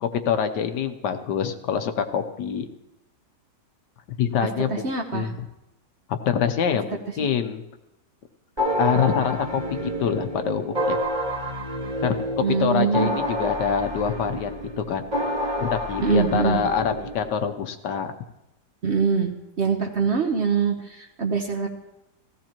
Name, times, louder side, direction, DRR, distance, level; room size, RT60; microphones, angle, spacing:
voice 1, 0.0-2.7 4.2-5.3 6.3-7.6 8.8-11.0 12.0-12.1 12.6-15.1 15.6-18.1, left 7 dB, 75° left, 8 dB, 1.4 m, -25 dB
voice 2, 4.7-5.3 7.2-7.3 12.4-13.1 16.0-16.6 18.8-19.3 19.6-21.7, right 5 dB, 45° right, 2 dB, 1.1 m, -23 dB
sound 1, 8.6-17.3, equal, 25° right, 1.5 m, -29 dB
16.0 x 15.0 x 3.0 m, 0.91 s
omnidirectional pair, 1.9 m